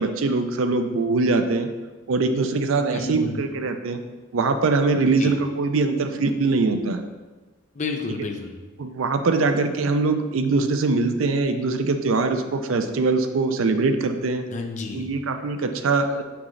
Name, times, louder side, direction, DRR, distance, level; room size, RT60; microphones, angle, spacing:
voice 1, 0.0-1.7 2.1-4.0 4.3-7.0 8.8-14.4 14.9-16.2, right 3 dB, 70° right, 7 dB, 0.5 m, -22 dB
voice 2, 2.9-3.4 5.2-5.3 7.7-8.6 14.5-15.1, left 3 dB, 35° left, 4 dB, 0.6 m, -30 dB
6.1 x 4.9 x 3.2 m, 1.3 s
head